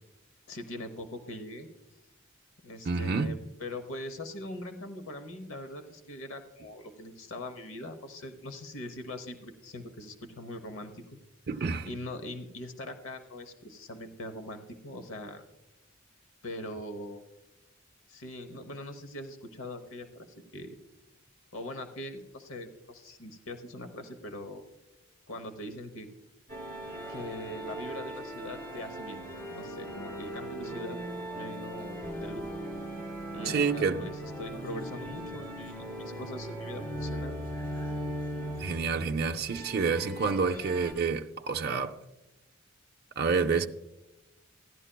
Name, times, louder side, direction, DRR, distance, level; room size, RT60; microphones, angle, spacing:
voice 1, 0.5-1.7 2.6-11.0 11.8-15.4 16.4-17.2 18.1-20.3 20.5-20.8 21.5-24.6 25.3-26.1 27.1-29.2 29.5-31.0 31.3-32.5 33.3-37.4, left 1 dB, 80° left, 0.9 m, -41 dB
voice 2, 2.9-3.3 11.5-11.9 33.5-34.1 38.6-42.0 43.2-43.7, right 5 dB, 50° right, 0.5 m, -28 dB
sound 1, 26.5-40.9, equal, 15° left, 2.3 m, -39 dB
15.5 x 11.0 x 2.2 m
head